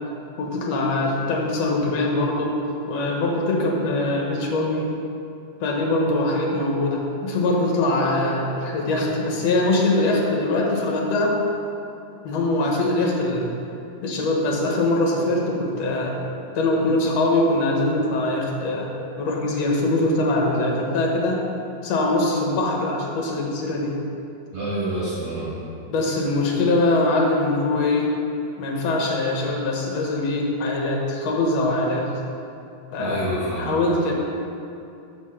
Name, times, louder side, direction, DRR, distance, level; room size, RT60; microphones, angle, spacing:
voice 1, 0.4-2.6 2.9-4.9 5.6-11.4 12.2-13.5 14.0-16.2 16.6-18.9 19.2-21.4 21.8-24.0 25.9-28.1 28.6-32.1 32.9-33.3 33.6-34.1, left 2 dB, 60° left, -1 dB, 2.0 m, -22 dB
voice 2, 24.5-25.5 33.0-33.7, right 1 dB, 55° right, -9 dB, 2.2 m, -27 dB
7.0 x 6.6 x 5.7 m, 2.6 s
omnidirectional pair, 3.8 m